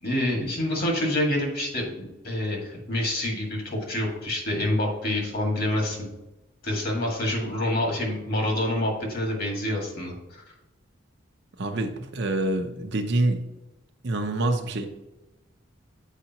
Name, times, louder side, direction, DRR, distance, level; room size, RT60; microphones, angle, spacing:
voice 1, 0.0-6.1 6.6-10.4, left 1 dB, 50° left, 0 dB, 1.9 m, -27 dB
voice 2, 11.6-13.4 14.0-14.9, right 2 dB, 55° right, 5 dB, 0.7 m, -26 dB
8.2 x 4.9 x 2.9 m, 1.0 s
head